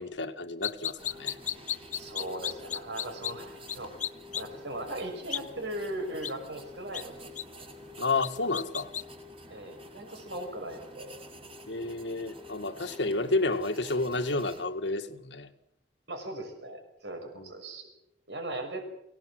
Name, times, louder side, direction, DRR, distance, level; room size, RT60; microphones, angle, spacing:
voice 1, 0.0-1.4 8.0-8.9 11.7-15.5 17.4-17.5, left 3 dB, 80° left, 1.8 m, -31 dB
sound 1, 0.6-3.3 3.7-3.8 4.0-4.4 5.3-5.4 6.2-6.3 6.9-7.0 7.4-7.5 8.2-9.0, left 10 dB, 45° left, 0.8 m, -33 dB
sound 2, 1.0-14.7, left 1 dB, 30° right, 5.6 m, -48 dB
voice 2, 2.0-3.9 4.4-7.3 7.6-7.7 9.5-11.2 16.1-17.9 18.3-18.8, right 1 dB, 75° right, 6.1 m, -38 dB
24.0 x 18.0 x 7.7 m
head